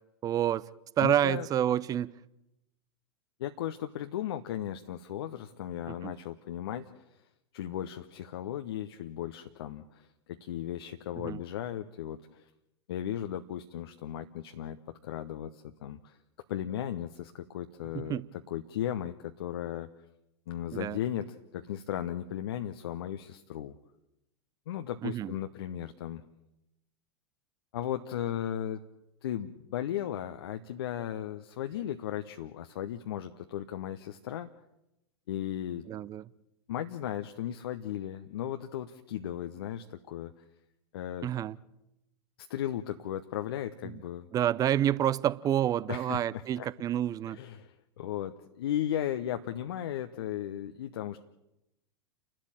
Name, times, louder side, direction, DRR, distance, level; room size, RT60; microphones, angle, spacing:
voice 1, 0.2-0.7 1.0-2.1 5.9-6.1 11.2-11.4 17.9-18.3 20.7-21.0 25.0-25.3 35.9-36.2 41.2-41.6 43.8-44.0 44.3-47.4, right 11 dB, 25° right, 0.7 m, -28 dB
voice 2, 1.0-1.5 3.4-7.0 7.5-12.5 12.9-16.2 16.5-18.2 18.5-19.9 20.5-23.8 24.7-26.2 27.7-28.8 29.2-34.5 35.3-35.9 36.7-40.3 40.9-41.3 42.4-44.3 45.9-46.7 47.3-51.2, left 11 dB, 60° left, 1.0 m, -36 dB
30.0 x 12.5 x 9.0 m
figure-of-eight pair, 90°, 15 cm